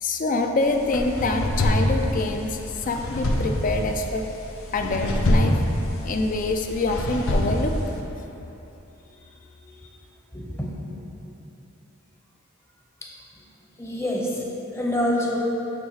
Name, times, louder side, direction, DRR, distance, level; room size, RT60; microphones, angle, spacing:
voice 1, 0.0-4.2 4.7-5.6 6.0-7.8 8.0-8.4, left 2 dB, 40° left, 4 dB, 0.4 m, -25 dB
sound 1, 0.6-8.0, left 1 dB, 90° left, 0.7 m, -25 dB
voice 2, 10.3-10.9 13.8-14.4 14.7-15.4, left 1 dB, 10° left, -3 dB, 0.7 m, -26 dB
8.4 x 3.2 x 4.8 m, 3.0 s
head